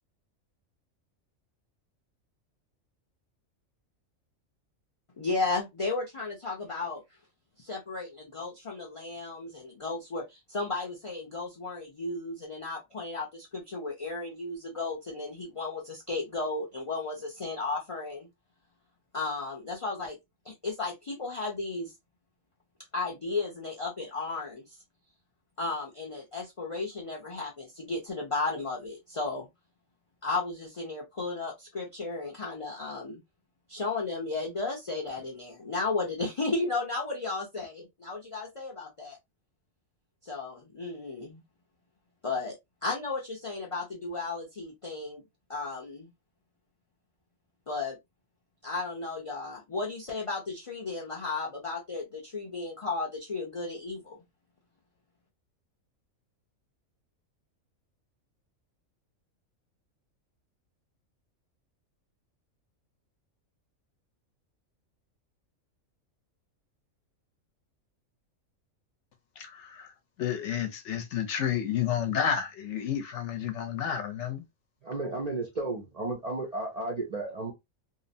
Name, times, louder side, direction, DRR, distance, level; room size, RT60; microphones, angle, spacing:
voice 1, 5.2-7.0 7.6-18.3 19.1-20.2 20.4-21.9 22.9-24.8 25.6-29.5 30.2-33.2 33.7-39.2 40.2-41.4 42.2-42.5 42.8-45.2 45.5-46.1 47.7-48.0 48.6-54.2, left 3 dB, 50° left, 0.4 m, -34 dB
voice 2, 69.4-69.9 70.2-74.5, left 8 dB, 65° left, 0.8 m, -31 dB
voice 3, 74.8-77.5, right 2 dB, 50° right, 0.5 m, -33 dB
2.8 x 2.0 x 2.6 m
omnidirectional pair, 1.4 m